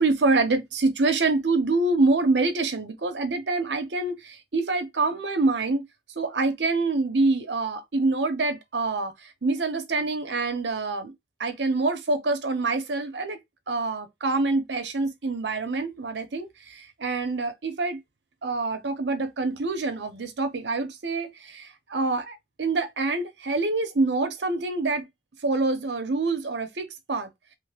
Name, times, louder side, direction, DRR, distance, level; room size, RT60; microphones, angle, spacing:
voice 1, 0.0-5.8 6.2-11.1 11.4-13.4 13.7-18.0 18.4-25.1 25.4-27.3, right 3 dB, 65° right, 0.8 m, -26 dB
3.3 x 2.0 x 3.3 m
head